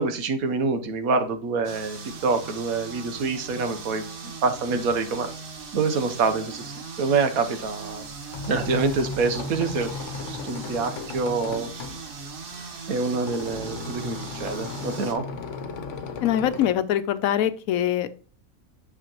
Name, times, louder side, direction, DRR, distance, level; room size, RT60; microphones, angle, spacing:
voice 1, 0.0-5.3 5.7-8.1 8.5-9.9 10.3-11.7 12.9-15.2, right 4 dB, 90° right, 8 dB, 1.4 m, -26 dB
sound 1, 1.6-15.1, right 4 dB, 45° right, 1.0 m, -39 dB
sound 2, 8.0-16.7, left 4 dB, 65° left, 1.1 m, -36 dB
voice 2, 16.2-18.1, left 11 dB, 85° left, 13 dB, 1.1 m, -23 dB
9.1 x 6.4 x 3.0 m, 0.40 s
omnidirectional pair, 1.4 m